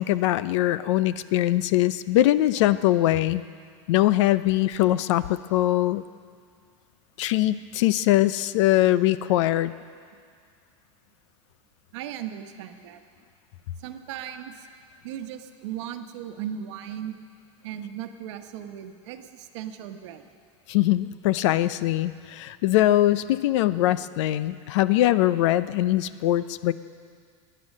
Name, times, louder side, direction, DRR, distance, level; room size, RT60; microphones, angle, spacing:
voice 1, 0.0-3.4 3.9-6.0 7.2-9.7 20.7-26.7, left 15 dB, 65° left, 15 dB, 0.5 m, -22 dB
voice 2, 11.9-13.0 13.8-14.7 15.0-17.2 17.6-20.2, right 10 dB, 65° right, 7 dB, 1.1 m, -37 dB
17.0 x 10.5 x 6.6 m, 2.1 s
supercardioid pair, 160°, 16 cm